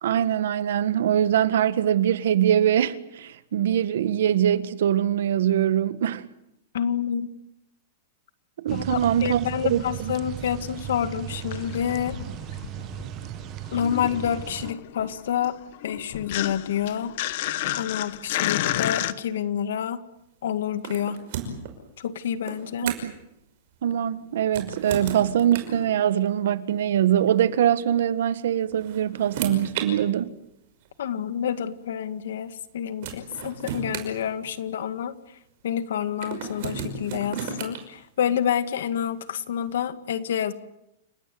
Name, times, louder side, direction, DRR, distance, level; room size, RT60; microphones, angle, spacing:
voice 1, 0.0-6.2 8.6-9.8 22.8-23.1 23.8-30.3, right 10 dB, 70° right, 1.5 m, -23 dB
voice 2, 6.7-7.3 8.7-12.2 13.7-15.6 15.8-17.1 17.7-20.0 20.4-21.2 22.0-22.9 31.0-35.2 35.6-40.5, left 9 dB, 75° left, 2.1 m, -28 dB
sound 1, 8.7-14.7, right 13 dB, 25° right, 0.9 m, -37 dB
sound 2, 11.3-13.3 13.5-19.1, left 14 dB, 45° left, 1.1 m, -31 dB
sound 3, 20.8-21.7 22.5-23.2 24.4-25.8 27.1-27.3 28.5-29.9 30.9-31.0 32.6-32.7 33.0-34.9 36.2-37.8, right 7 dB, 45° right, 5.5 m, -34 dB
29.5 x 18.0 x 9.5 m
supercardioid pair, 175°, 0 cm